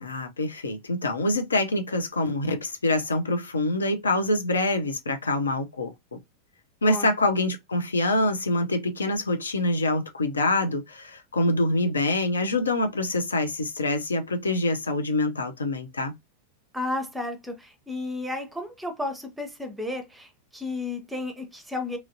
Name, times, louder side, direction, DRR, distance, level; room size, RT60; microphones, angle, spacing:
voice 1, 0.0-5.9 6.8-16.1, left 2 dB, 75° left, 0.5 m, -25 dB
voice 2, 16.7-22.0, left 2 dB, 5° right, 0.7 m, -33 dB
2.9 x 2.5 x 2.7 m
figure-of-eight pair, 90°, 0 cm